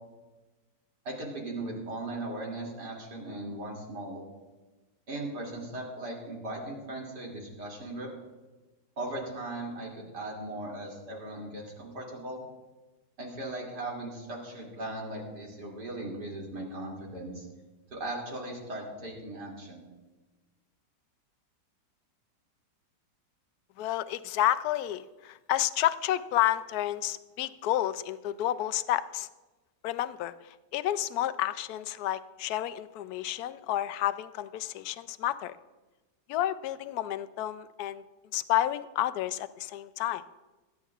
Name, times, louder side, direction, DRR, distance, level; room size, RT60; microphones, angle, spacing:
voice 1, 1.0-4.2 5.1-8.1 9.0-12.4 13.2-17.5 17.9-19.9, right 2 dB, 70° right, -2 dB, 3.2 m, -38 dB
voice 2, 23.8-29.3 29.8-35.6 36.3-38.0 38.3-40.2, left 13 dB, 70° left, 14 dB, 1.0 m, -30 dB
22.5 x 10.0 x 2.4 m, 1.2 s
omnidirectional pair, 1.8 m